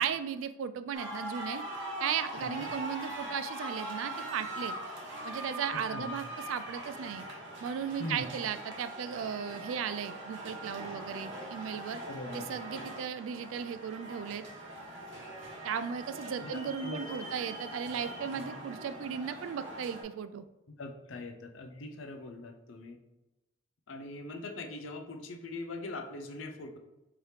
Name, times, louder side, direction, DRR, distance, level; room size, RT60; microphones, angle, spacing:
voice 1, 0.0-1.6 2.0-4.8 5.2-7.3 7.6-12.0 12.3-14.4 15.6-20.4, right 7 dB, 85° right, 13 dB, 0.3 m, -36 dB
sound 1, 0.9-20.0, right 1 dB, 70° right, 0.9 m, -42 dB
voice 2, 5.7-6.1 8.0-8.2 11.9-12.5 16.2-17.3 20.8-23.0 23.9-26.8, left 2 dB, 80° left, 6 dB, 0.5 m, -42 dB
4.7 x 2.9 x 3.3 m, 1.0 s
head